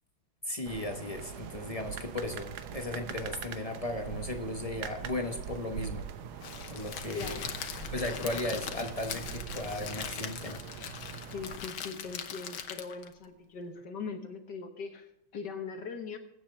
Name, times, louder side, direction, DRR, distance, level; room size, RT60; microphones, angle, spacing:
voice 1, 0.4-6.1 6.7-7.4 7.9-10.6, left 2 dB, 45° left, 4 dB, 0.4 m, -36 dB
sound 1, 0.7-11.6, right 8 dB, 80° right, 1.7 m, -42 dB
Crackle, 6.4-13.1, left 7 dB, 75° left, 1.8 m, -40 dB
voice 2, 7.1-7.5 11.3-15.1 15.3-16.2, left 5 dB, 60° left, 6 dB, 1.6 m, -40 dB
21.5 x 8.7 x 3.2 m, 0.90 s
omnidirectional pair, 2.3 m